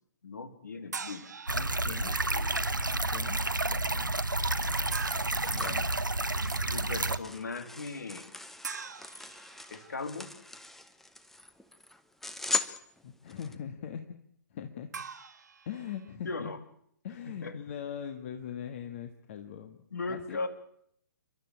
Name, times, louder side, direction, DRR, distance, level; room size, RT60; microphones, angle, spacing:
voice 1, 0.2-1.3 1.7-2.6 5.1-5.8 6.7-8.3 9.7-10.3 16.2-16.6 17.3-17.6 19.9-20.5, left 3 dB, 60° left, 10 dB, 2.3 m, -39 dB
sound 1, 0.9-2.2 4.9-5.6 8.6-10.2 14.9-16.1, right 5 dB, 60° right, 1.8 m, -42 dB
voice 2, 1.5-2.1 2.8-3.4 3.7-4.1 5.5-5.9 13.0-14.1 14.5-14.9 15.7-16.5 17.0-19.8 20.1-20.5, left 8 dB, 40° left, 7 dB, 1.6 m, -41 dB
sound 2, 1.5-7.2, right 2 dB, 80° right, 1.1 m, -30 dB
sound 3, 4.1-13.6, left 4 dB, 5° left, 1.0 m, -40 dB
29.0 x 12.5 x 8.7 m, 0.71 s
figure-of-eight pair, 125°, 10 cm